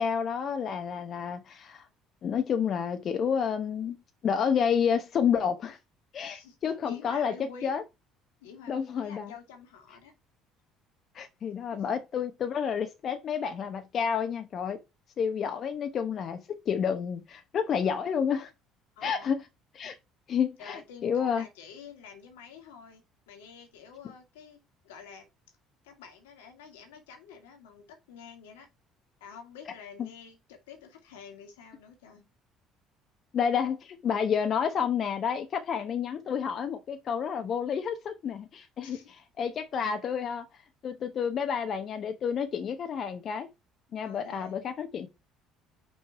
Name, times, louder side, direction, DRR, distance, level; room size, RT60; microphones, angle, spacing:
voice 1, 0.0-1.9 2.2-4.0 4.2-5.8 6.1-7.3 7.6-7.8 8.7-9.3 11.1-14.8 15.2-18.5 19.0-19.5 19.7-20.0 20.3-21.4 30.0-30.1 33.3-40.5 40.8-43.5 43.9-45.1, left 7 dB, 50° left, 0.8 m, -30 dB
voice 2, 6.2-7.7 8.4-10.1 11.7-11.8 19.0-19.3 19.8-20.0 20.6-25.3 25.8-28.7 29.2-32.3 38.8-39.1 44.0-44.6, left 6 dB, 80° left, 1.8 m, -49 dB
5.5 x 4.5 x 4.5 m
hypercardioid pair, 60°, 0 cm